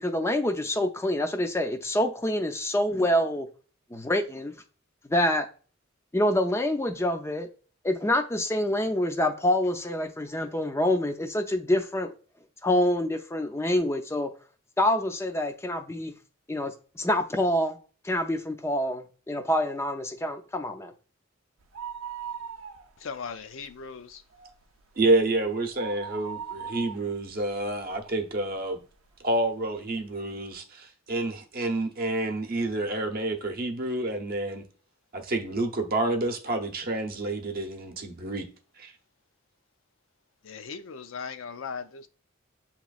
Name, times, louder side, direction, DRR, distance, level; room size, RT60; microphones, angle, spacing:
voice 1, 0.0-3.5 3.9-4.5 5.1-5.5 6.1-7.5 7.8-12.1 12.6-14.3 14.8-16.1 16.5-17.8 18.0-20.9, left 1 dB, 15° left, 0.4 m, -26 dB
sound 1, 21.6-23.3 23.6-23.7 24.1-28.5 29.1-29.2 29.9-30.0 30.3-30.4, right 7 dB, 85° right, 0.5 m, -40 dB
voice 2, 23.0-24.2 40.4-42.1, left 5 dB, 70° left, 0.5 m, -38 dB
voice 3, 25.0-28.8 29.2-34.6 35.1-38.5 38.8-38.9, right 2 dB, 45° right, 0.7 m, -28 dB
7.4 x 3.0 x 2.4 m
head